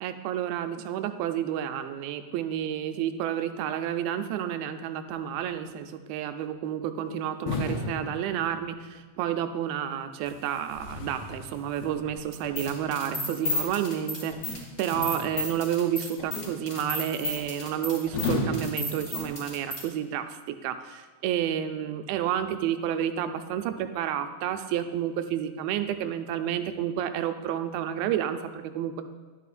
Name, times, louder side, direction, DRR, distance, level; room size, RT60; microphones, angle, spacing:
voice 1, 0.0-14.3 14.8-29.0, right 10 dB, 90° right, 8 dB, 2.4 m, -30 dB
sound 1, 7.5-8.9 10.2-12.3 14.9-15.8 18.1-19.6, left 3 dB, 85° left, 2.9 m, -34 dB
sound 2, 12.3-19.8, left 2 dB, 30° left, 1.0 m, -33 dB
11.0 x 8.0 x 2.5 m, 1.3 s
omnidirectional pair, 4.2 m